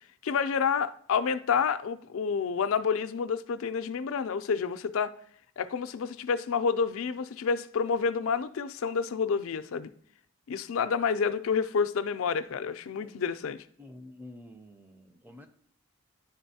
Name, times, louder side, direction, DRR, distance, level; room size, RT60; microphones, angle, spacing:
voice 1, 0.2-5.1 5.6-9.9 10.5-13.7, left 6 dB, 65° left, 0.4 m, -29 dB
voice 2, 13.8-15.5, left 1 dB, 10° right, 0.4 m, -48 dB
10.0 x 3.9 x 2.7 m
head